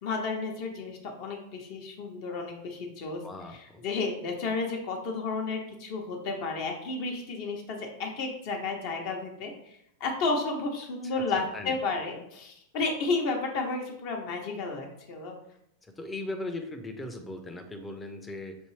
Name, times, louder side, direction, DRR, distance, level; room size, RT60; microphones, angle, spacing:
voice 1, 0.0-3.2 3.5-15.3, left 3 dB, 45° left, 1 dB, 0.8 m, -32 dB
voice 2, 3.2-3.8 11.0-11.1 11.4-11.8 15.8-18.6, left 2 dB, 10° left, 5 dB, 0.6 m, -38 dB
6.2 x 2.6 x 3.1 m, 0.76 s
figure-of-eight pair, 90°, 0 cm